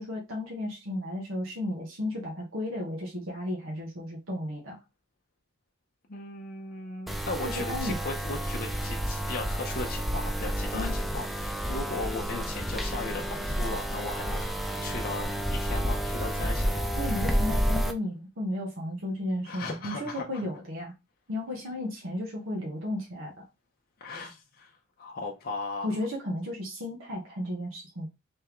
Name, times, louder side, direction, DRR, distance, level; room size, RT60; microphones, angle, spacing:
voice 1, 0.0-4.8 7.4-8.0 10.7-11.0 17.0-20.9 21.3-23.4 25.8-28.1, left 1 dB, 70° right, 1.2 m, -34 dB
voice 2, 6.1-14.4 14.8-16.9 19.4-20.2 24.0-24.7 25.0-26.0, left 3 dB, 45° left, 0.6 m, -37 dB
sound 1, 7.1-17.9, equal, ahead, 0.3 m, -30 dB
3.5 x 3.3 x 3.0 m
head